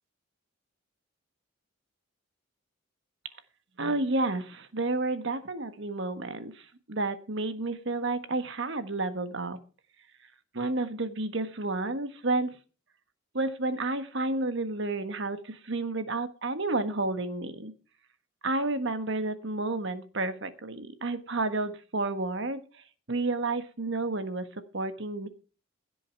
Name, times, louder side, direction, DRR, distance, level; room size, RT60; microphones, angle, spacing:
voice 1, 3.8-9.6 10.5-12.5 13.3-17.7 18.4-22.6 23.1-24.5 24.7-25.3, right 2 dB, 60° right, 10 dB, 1.4 m, -31 dB
16.0 x 7.8 x 4.7 m, 0.35 s
head